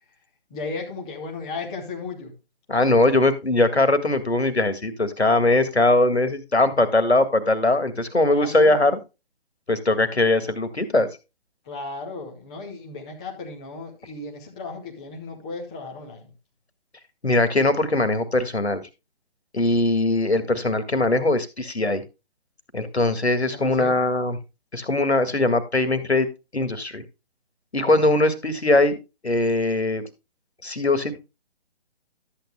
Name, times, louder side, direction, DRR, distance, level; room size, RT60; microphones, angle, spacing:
voice 1, 0.5-2.3 8.3-8.8 11.6-16.3 23.5-24.0 27.8-28.1, left 3 dB, 5° left, 0.5 m, -35 dB
voice 2, 2.7-8.9 9.7-11.1 17.2-18.8 19.5-22.0 22.7-24.4 24.7-26.3 26.5-27.0 27.7-28.9 29.2-30.0 30.6-31.2, left 2 dB, 80° left, 1.9 m, -21 dB
12.5 x 8.8 x 2.2 m
figure-of-eight pair, 140°, 32 cm